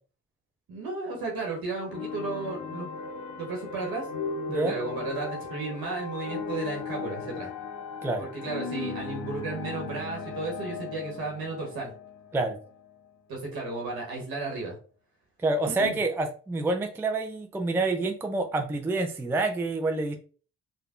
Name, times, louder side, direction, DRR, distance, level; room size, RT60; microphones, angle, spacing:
voice 1, 0.7-2.9 3.4-4.1 4.5-7.5 8.2-11.9 13.3-14.8 15.8-16.0, right 3 dB, 70° right, -1 dB, 1.1 m, -34 dB
sound 1, 1.9-13.1, left 4 dB, 50° left, 0.6 m, -37 dB
voice 2, 15.4-20.1, right 2 dB, 5° right, 5 dB, 0.4 m, -27 dB
3.4 x 2.3 x 2.4 m, 0.39 s
hypercardioid pair, 50°, 37 cm